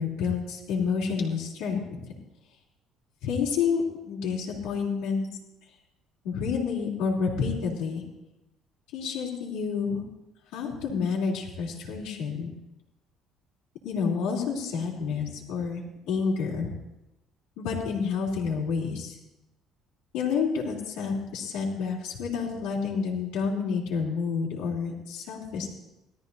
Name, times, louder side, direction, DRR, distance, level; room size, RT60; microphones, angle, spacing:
voice 1, 0.0-2.0 3.2-5.3 6.2-8.0 8.9-10.0 10.5-12.5 13.8-16.7 17.6-19.1 20.1-25.7, left 5 dB, 85° left, -6 dB, 3.4 m, -29 dB
18.5 x 13.5 x 2.7 m, 0.93 s
cardioid pair, 145°, 0 cm